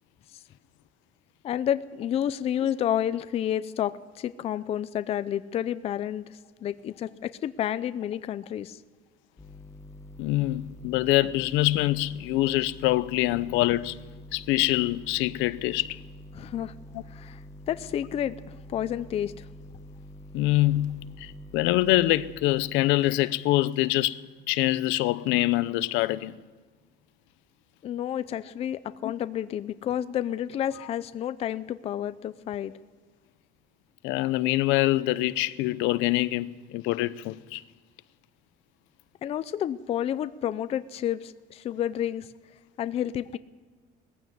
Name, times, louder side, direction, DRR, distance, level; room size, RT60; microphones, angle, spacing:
voice 1, 1.4-6.3 6.6-8.8 16.3-16.7 17.1-17.4 17.7-18.4 18.7-19.4 27.8-32.7 39.2-42.3 42.8-43.4, left 10 dB, 30° left, 0.5 m, -30 dB
sound 1, 9.4-22.4, left 1 dB, 15° left, 1.0 m, -46 dB
voice 2, 10.2-14.0 14.3-16.0 16.9-17.0 20.3-24.2 24.5-26.4 29.0-29.1 34.0-37.6, left 17 dB, 70° left, 0.7 m, -25 dB
18.5 x 15.0 x 9.5 m
cardioid pair, 175°, 20 cm